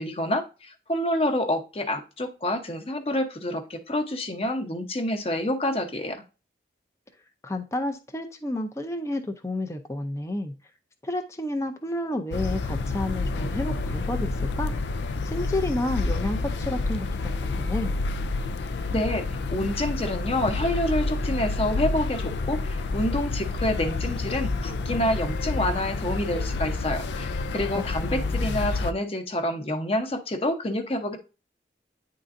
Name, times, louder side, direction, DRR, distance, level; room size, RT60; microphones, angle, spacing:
voice 1, 0.0-6.2 18.9-31.2, left 1 dB, 35° left, 6 dB, 0.9 m, -28 dB
voice 2, 7.4-10.5 11.0-14.7 15.2-17.9 27.7-28.5, left 1 dB, 15° left, 5 dB, 0.5 m, -31 dB
sound 1, 12.3-28.9, left 3 dB, 75° left, 0.4 m, -29 dB
9.6 x 3.8 x 2.6 m, 0.32 s
head